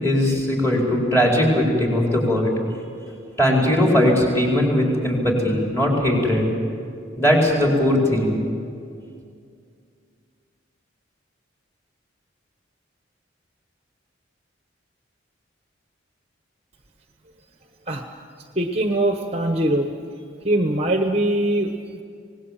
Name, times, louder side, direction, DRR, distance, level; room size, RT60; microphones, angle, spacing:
voice 1, 0.0-2.5 3.4-6.5 7.2-8.4, left 1 dB, 10° left, -2 dB, 4.7 m, -19 dB
voice 2, 18.5-19.9 20.4-22.0, right 1 dB, 30° right, 4 dB, 1.1 m, -22 dB
26.0 x 19.0 x 7.5 m, 2.3 s
head